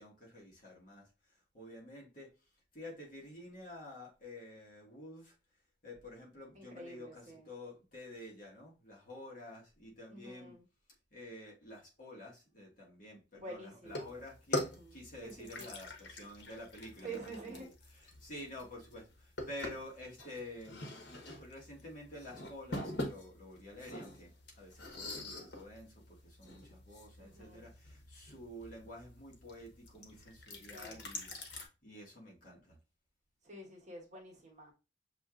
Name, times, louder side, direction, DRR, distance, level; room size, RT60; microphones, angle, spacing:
voice 1, 0.0-2.3 2.7-5.3 5.8-10.6 11.1-14.6 14.9-17.7 18.0-32.8, left 1 dB, 50° left, 1.5 m, -50 dB
voice 2, 6.5-7.5 10.1-10.6 13.3-14.1 14.7-14.9 15.2-15.7 17.0-17.7 27.2-27.7 30.7-31.1 33.4-34.7, right 2 dB, 40° right, 1.4 m, -48 dB
sound 1, 13.8-31.7, left 1 dB, 80° left, 1.1 m, -45 dB
6.6 x 2.9 x 2.4 m
head